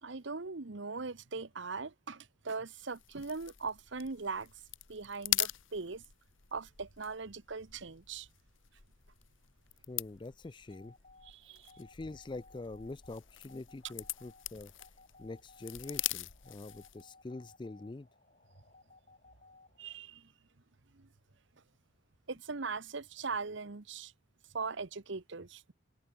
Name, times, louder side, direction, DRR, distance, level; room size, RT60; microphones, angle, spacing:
voice 1, 0.0-4.5 4.9-6.0 6.5-8.3 11.2-11.7 19.8-20.3 20.9-21.1 22.3-24.1 24.5-25.7, right 4 dB, 60° right, 1.0 m, -40 dB
sound 1, 2.7-17.1, left 15 dB, 70° left, 1.3 m, -42 dB
voice 2, 9.9-10.9 11.8-14.7 15.2-18.1, left 2 dB, 25° left, 0.4 m, -45 dB
sound 2, 10.7-20.0, left 3 dB, 40° left, 5.8 m, -61 dB
head